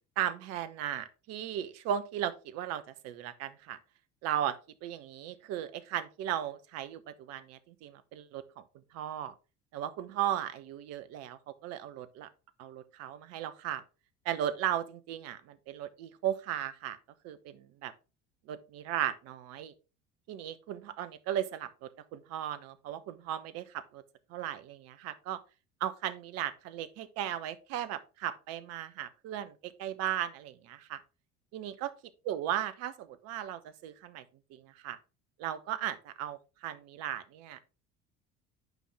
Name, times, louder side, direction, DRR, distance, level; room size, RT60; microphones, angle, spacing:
voice 1, 0.2-3.8 4.2-4.6 4.8-8.4 8.9-9.3 9.7-12.3 12.6-13.8 14.2-17.0 17.2-17.9 18.5-19.7 20.3-24.0 24.3-25.4 25.8-31.0 31.5-31.9 32.2-34.2 34.5-35.0 35.4-37.6, right 11 dB, 50° right, 13 dB, 0.9 m, -36 dB
9.3 x 5.5 x 3.5 m, 0.31 s
figure-of-eight pair, 65°, 32 cm